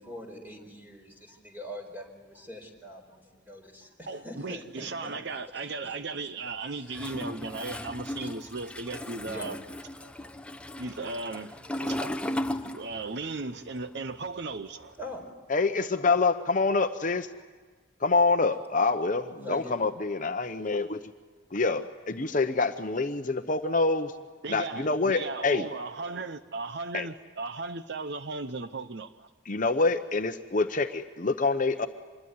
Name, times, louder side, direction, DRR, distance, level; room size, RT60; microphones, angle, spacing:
voice 1, 0.0-5.2 5.5-5.7 6.7-7.0 8.2-8.5 9.3-9.5 10.0-10.1 11.1-11.2 11.7-12.3 12.6-12.7 13.1-13.2 14.5-15.3 17.4-17.5 19.4-19.7, equal, 10° right, 3 dB, 4.5 m, -44 dB
voice 2, 4.1-9.6 10.8-12.2 12.7-15.0 24.4-29.3, right 3 dB, 55° right, 11 dB, 0.8 m, -36 dB
Toilet flush, 6.9-13.3 13.6-15.2, left 1 dB, 5° left, 0.8 m, -36 dB
voice 3, 15.5-17.3 18.0-21.0 21.5-24.2 24.5-25.7 26.9-27.1 29.5-31.9, left 3 dB, 40° left, 8 dB, 0.8 m, -26 dB
26.0 x 21.5 x 9.5 m, 1.4 s
head